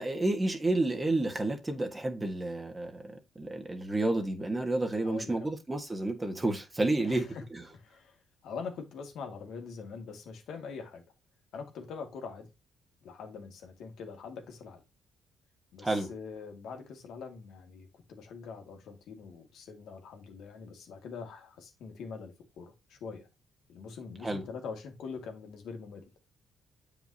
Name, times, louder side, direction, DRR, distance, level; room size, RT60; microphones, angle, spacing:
voice 1, 0.0-7.6 15.8-16.1 24.2-24.4, right 2 dB, 20° right, 1.5 m, -30 dB
voice 2, 5.0-5.6 7.0-7.5 7.7-7.9 8.4-11.0 11.5-12.5 13.0-14.8 15.7-23.3 23.7-26.0, left 5 dB, 75° left, 2.2 m, -43 dB
7.8 x 5.2 x 2.8 m
cardioid pair, 90°, 0 cm